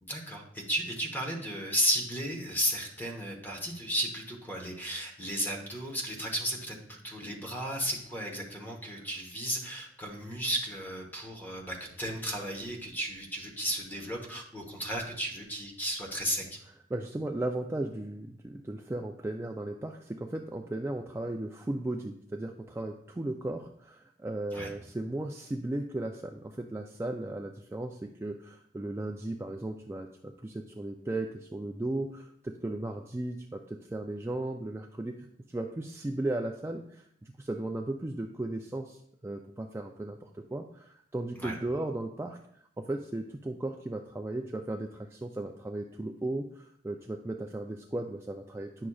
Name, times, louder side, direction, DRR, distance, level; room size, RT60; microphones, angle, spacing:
voice 1, 0.0-16.4 24.5-24.7 41.4-41.6, equal, 10° left, 1 dB, 1.0 m, -34 dB
voice 2, 16.9-48.9, right 2 dB, 15° right, 3 dB, 0.3 m, -36 dB
9.7 x 6.1 x 2.3 m, 0.69 s
head